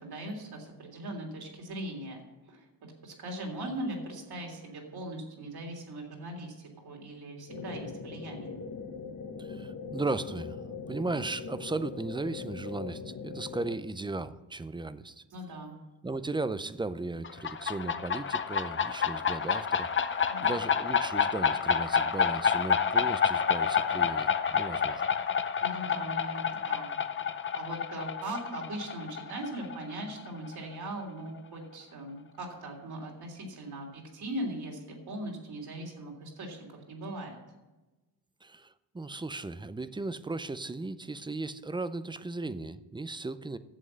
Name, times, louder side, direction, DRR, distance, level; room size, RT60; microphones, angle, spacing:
voice 1, 0.0-2.2 2.5-2.7 3.0-8.6 15.3-15.8 20.3-20.5 25.6-26.9 27.5-36.6 36.9-37.4, right 1 dB, 65° right, 1 dB, 3.3 m, -39 dB
sound 1, 7.5-13.8, left 5 dB, 45° left, 1.1 m, -41 dB
voice 2, 9.4-15.2 16.0-25.0 38.4-43.6, right 3 dB, 10° right, 13 dB, 0.5 m, -36 dB
sound 2, 17.2-30.6, left 6 dB, 30° left, 0.6 m, -29 dB
11.0 x 7.8 x 6.4 m, 1.1 s
cardioid pair, 100°, 40 cm